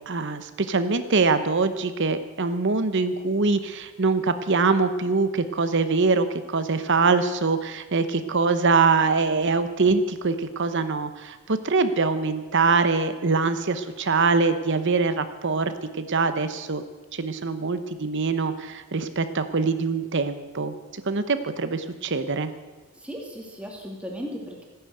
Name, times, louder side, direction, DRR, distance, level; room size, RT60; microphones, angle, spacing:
voice 1, 0.1-16.8 17.1-22.5, right 4 dB, 55° right, 10 dB, 0.8 m, -23 dB
voice 2, 23.0-24.6, equal, 5° right, -1 dB, 2.7 m, -36 dB
15.0 x 10.5 x 7.9 m, 1.3 s
head